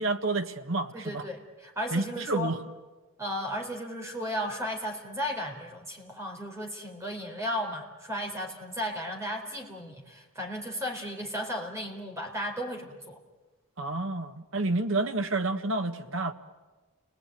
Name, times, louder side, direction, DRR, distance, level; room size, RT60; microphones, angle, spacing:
voice 1, 0.0-1.2 1.9-2.6 13.8-16.3, right 2 dB, 60° right, 7 dB, 1.6 m, -29 dB
voice 2, 0.9-2.5 3.2-13.2, equal, 15° right, 2 dB, 4.1 m, -35 dB
29.5 x 20.0 x 9.4 m, 1.2 s
head